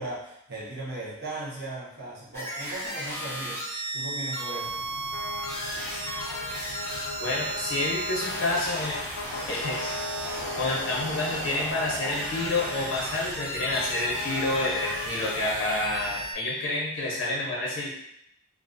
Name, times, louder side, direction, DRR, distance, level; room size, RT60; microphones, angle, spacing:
voice 1, 0.0-4.8, right 2 dB, 45° right, -6 dB, 0.6 m, -37 dB
sound 1, 2.3-16.3, right 1 dB, 10° left, 0.4 m, -35 dB
sound 2, 4.6-16.3, left 2 dB, 90° left, 0.3 m, -38 dB
voice 2, 7.2-8.9 9.5-10.0 10.5-17.9, left 2 dB, 60° left, -4 dB, 0.7 m, -29 dB
2.4 x 2.0 x 2.5 m, 0.75 s
head